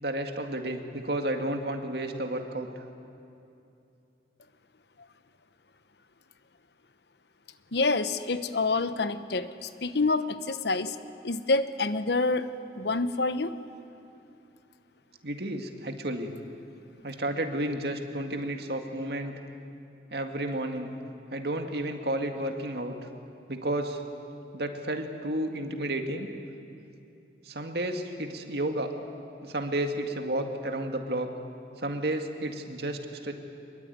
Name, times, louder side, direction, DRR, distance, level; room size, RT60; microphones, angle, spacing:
voice 1, 0.0-2.8 15.2-16.3 17.0-19.3 20.1-20.9 21.3-22.9 23.5-24.0 24.5-26.3 27.5-28.9 29.4-31.3 31.8-33.3, right 1 dB, 65° right, 5 dB, 2.1 m, -32 dB
voice 2, 7.7-11.0 11.2-13.6, left 3 dB, 70° left, 12 dB, 1.0 m, -27 dB
24.5 x 22.0 x 9.4 m, 2.7 s
head